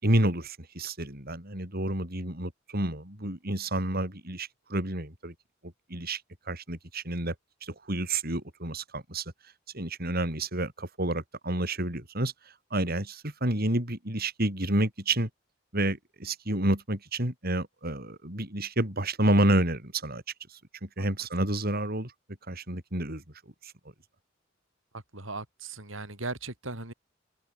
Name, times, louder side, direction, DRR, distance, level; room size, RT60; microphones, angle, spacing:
voice 1, 0.0-5.3 5.9-6.2 6.5-7.3 7.6-9.3 9.7-15.3 15.7-20.2 20.5-22.1 22.5-23.2 23.6-23.7, right 1 dB, 50° right, 6.5 m, -29 dB
voice 2, 25.1-26.9, right 3 dB, 80° right, 7.2 m, -37 dB
open air
head